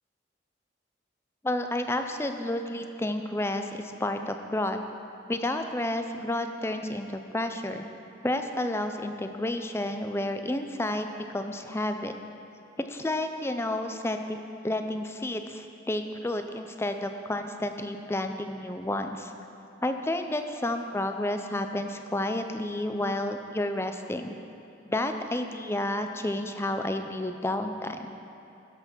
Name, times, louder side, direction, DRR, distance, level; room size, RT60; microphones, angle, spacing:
voice 1, 1.4-4.8 5.3-7.9 8.2-12.1 12.9-19.3 19.8-24.3 24.9-28.1, left 1 dB, 15° left, 7 dB, 0.4 m, -31 dB
12.5 x 5.9 x 6.0 m, 2.9 s
head